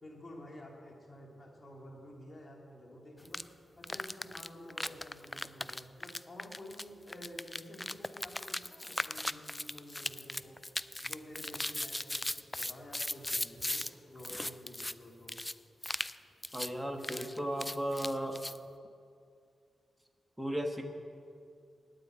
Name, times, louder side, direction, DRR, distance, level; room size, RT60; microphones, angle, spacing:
voice 1, 0.0-3.4 3.8-10.6 11.0-15.4, left 1 dB, 40° left, 0 dB, 2.6 m, -50 dB
sound 1, 3.3-3.4 3.8-13.9 14.2-14.9 15.3-15.5 15.8-16.2 16.4-16.7 17.0-18.6, left 1 dB, 15° left, 0.3 m, -38 dB
voice 2, 16.5-18.4 20.4-20.8, equal, 5° right, 3 dB, 1.4 m, -35 dB
9.5 x 7.9 x 8.9 m, 2.4 s
cardioid pair, 55°, 0 cm